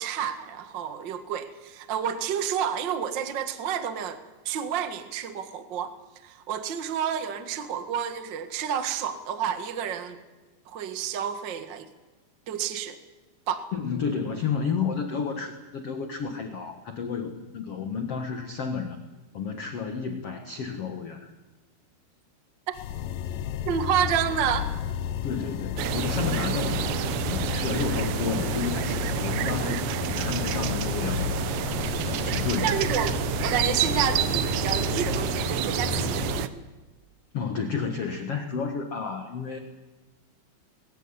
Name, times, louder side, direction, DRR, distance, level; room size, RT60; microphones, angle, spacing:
voice 1, 0.0-5.9 6.2-10.2 10.6-11.9 12.5-13.0 13.5-13.6 23.6-24.7 32.3-36.4, right 8 dB, 65° right, 10 dB, 1.1 m, -30 dB
voice 2, 13.7-19.0 19.3-21.3 25.2-31.3 31.6-32.8 37.3-39.6, left 6 dB, 55° left, 6 dB, 1.7 m, -31 dB
sound 1, 22.7-36.4, left 10 dB, 75° left, 2.0 m, -32 dB
sound 2, 25.8-36.5, right 12 dB, 85° right, 3.3 m, -29 dB
21.5 x 17.0 x 9.8 m, 1.2 s
omnidirectional pair, 4.9 m